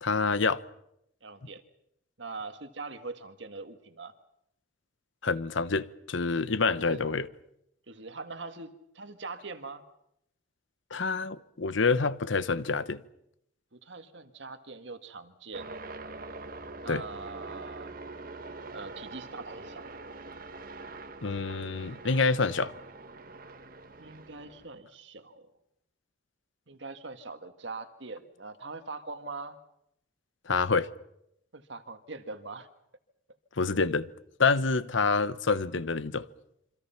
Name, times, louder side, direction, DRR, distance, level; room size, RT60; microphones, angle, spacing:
voice 1, 0.0-0.6 5.2-7.3 10.9-13.0 16.9-17.0 21.2-22.7 30.5-30.9 33.6-34.1 34.4-36.3, left 4 dB, 75° left, 0.9 m, -27 dB
voice 2, 1.2-1.6 2.2-4.1 6.5-7.0 7.9-9.8 13.7-15.7 16.8-17.9 18.7-19.8 24.0-25.5 26.7-29.6 31.5-32.7, right 3 dB, 65° right, 1.9 m, -42 dB
sound 1, 15.5-24.7, right 3 dB, 45° right, 1.6 m, -44 dB
27.0 x 25.5 x 5.9 m
head